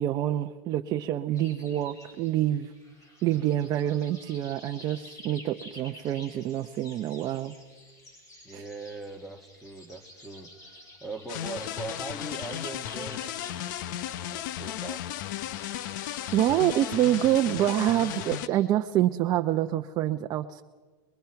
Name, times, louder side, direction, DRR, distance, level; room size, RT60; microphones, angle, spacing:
voice 1, 0.0-2.7 3.2-7.5 8.5-8.6 16.3-20.6, right 12 dB, 35° right, 6 dB, 0.7 m, -26 dB
sound 1, 1.4-18.7, left 1 dB, 30° left, 6.2 m, -50 dB
voice 2, 8.4-13.6 14.3-15.0, right 3 dB, ahead, 8 dB, 1.8 m, -41 dB
sound 2, 11.3-18.5, left 12 dB, 65° left, 0.9 m, -35 dB
29.5 x 21.5 x 5.8 m, 1.4 s
supercardioid pair, 140°, 11 cm